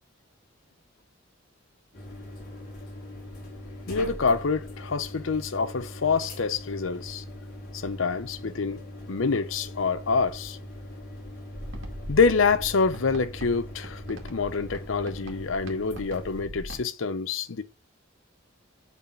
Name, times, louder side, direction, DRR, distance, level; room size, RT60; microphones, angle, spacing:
sound 1, 1.9-16.4, left 1 dB, 50° left, 3.7 m, -41 dB
voice 1, 3.9-7.2 7.7-8.8 9.1-10.6 12.1-17.6, left 4 dB, 80° left, 0.7 m, -26 dB
sound 2, 11.5-16.8, equal, 75° right, 2.2 m, -41 dB
7.2 x 4.2 x 5.8 m
head